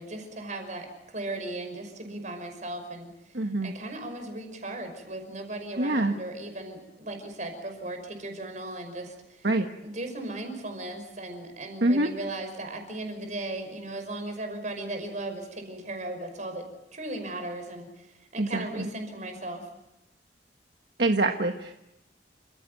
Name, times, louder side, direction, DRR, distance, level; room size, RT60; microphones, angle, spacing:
voice 1, 0.0-3.1 3.6-9.5 9.8-16.7 16.9-19.7, right 2 dB, 45° right, 6 dB, 5.7 m, -37 dB
voice 2, 3.3-3.7 5.8-6.1 9.4-9.7 11.8-12.1 18.4-18.9 21.0-21.7, right 2 dB, 65° right, 5 dB, 1.4 m, -25 dB
29.5 x 16.0 x 9.4 m, 0.91 s
head